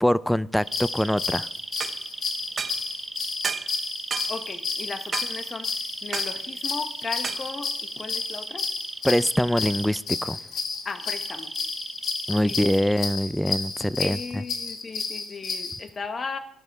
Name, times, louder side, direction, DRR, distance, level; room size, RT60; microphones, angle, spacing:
voice 1, 0.0-1.5 9.0-10.4 12.3-14.4, equal, 5° left, 19 dB, 0.4 m, -24 dB
sound 1, 0.6-15.8, left 5 dB, 60° left, 2.3 m, -32 dB
sound 2, 0.6-10.0 10.9-13.0, right 2 dB, 15° right, 0.8 m, -37 dB
sound 3, 1.8-2.0 2.6-2.8 3.4-3.7 4.1-4.3 5.1-5.3 6.1-6.3 7.2-7.5, right 5 dB, 40° right, 0.9 m, -30 dB
voice 2, 4.3-5.7 6.0-8.7 10.8-11.5 12.4-12.6 14.0-16.4, left 4 dB, 40° left, 9 dB, 1.3 m, -36 dB
12.0 x 11.5 x 4.9 m, 0.72 s
cardioid pair, 90°, 0 cm